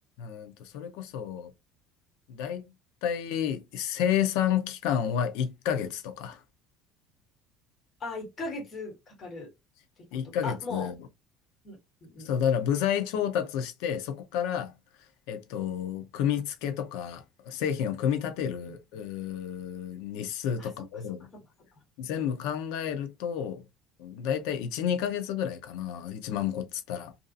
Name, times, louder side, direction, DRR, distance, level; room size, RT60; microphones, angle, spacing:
voice 1, 0.2-1.5 2.3-2.7 3.0-6.4 10.1-10.9 12.2-14.7 15.3-21.3 22.0-23.6 24.0-27.1, left 9 dB, 85° left, 0.6 m, -30 dB
voice 2, 8.0-9.5 10.1-10.9 11.6-12.3 20.6-20.7 21.3-21.4, left 3 dB, 30° left, 1.3 m, -39 dB
2.6 x 2.4 x 2.5 m
cardioid pair, 155°, 0 cm